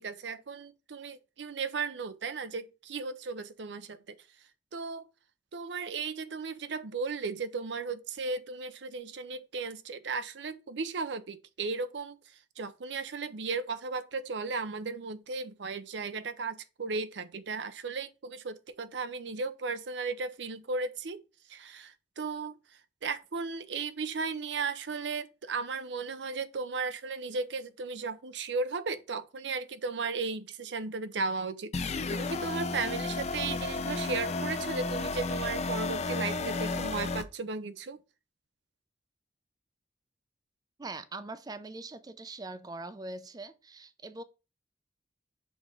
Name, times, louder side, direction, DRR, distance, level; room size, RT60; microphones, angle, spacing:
voice 1, 0.0-4.2 4.7-5.1 5.5-12.2 12.6-21.2 21.5-22.6 23.0-38.0, right 4 dB, 85° right, 0.6 m, -35 dB
sound 1, 31.7-37.2, left 3 dB, 40° left, 0.5 m, -33 dB
voice 2, 40.8-44.2, right 2 dB, 20° right, 0.4 m, -42 dB
6.2 x 3.6 x 5.2 m
head